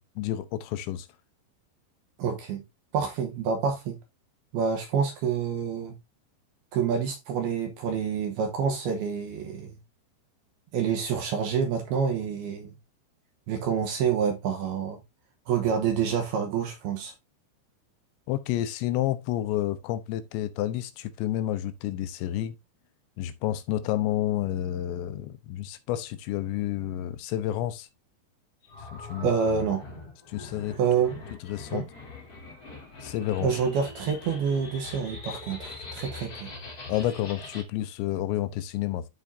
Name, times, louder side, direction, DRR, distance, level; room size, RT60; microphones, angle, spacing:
voice 1, 0.2-1.1 18.3-22.6 23.2-27.9 28.9-29.3 30.3-30.8 31.4-31.8 33.0-33.6 36.9-39.1, left 13 dB, 80° left, 2.9 m, -30 dB
voice 2, 2.2-2.6 2.9-4.0 4.5-5.9 6.7-9.8 10.7-12.7 13.5-15.0 15.5-17.1 29.2-29.8 30.8-31.2 31.7-31.9 33.4-36.5, right 6 dB, 75° right, 2.5 m, -27 dB
sound 1, 28.6-37.6, left 3 dB, 45° left, 1.2 m, -42 dB
13.0 x 4.5 x 2.7 m
omnidirectional pair, 5.5 m